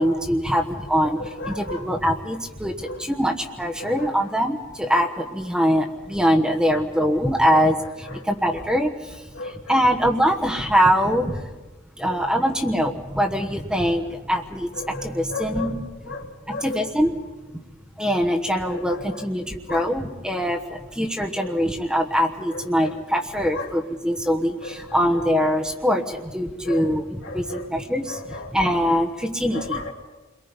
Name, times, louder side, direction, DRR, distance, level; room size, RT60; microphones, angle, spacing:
voice 1, 0.0-1.2 1.4-9.2 9.7-11.5 12.0-15.8 16.5-17.1 18.0-28.2 28.5-29.8, equal, 5° right, 2 dB, 1.2 m, -23 dB
voice 2, 1.0-1.9 2.8-3.0 3.8-4.3 6.7-7.0 7.5-8.3 8.5-8.6 9.3-9.8 12.0-12.5 14.7-15.8 16.0-16.9 18.7-19.2 19.7-19.9 21.4-21.5 22.5-23.0 23.5-23.7 24.6-25.2 25.9-26.1 26.6-26.9 27.2-27.7 28.0-28.8 29.5-29.9, left 3 dB, 65° left, 1 dB, 3.1 m, -35 dB
30.0 x 22.5 x 5.3 m, 1.2 s
head